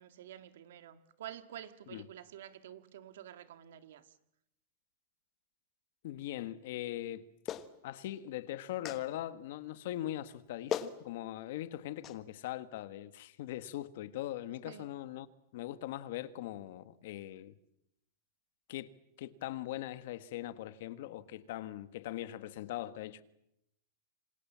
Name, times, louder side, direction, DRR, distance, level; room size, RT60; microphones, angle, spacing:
voice 1, 0.0-4.1 14.7-14.9, right 11 dB, 65° right, 2.0 m, -49 dB
voice 2, 6.0-7.3 7.8-15.3 15.5-17.6 18.7-18.9 19.2-23.2, left 13 dB, 50° left, 1.5 m, -41 dB
Clapping, 7.5-7.7 8.8-9.0 10.3-10.4 10.7-11.0 12.0-12.2, left 9 dB, 20° left, 1.3 m, -36 dB
27.0 x 27.0 x 7.4 m
supercardioid pair, 175°, 0 cm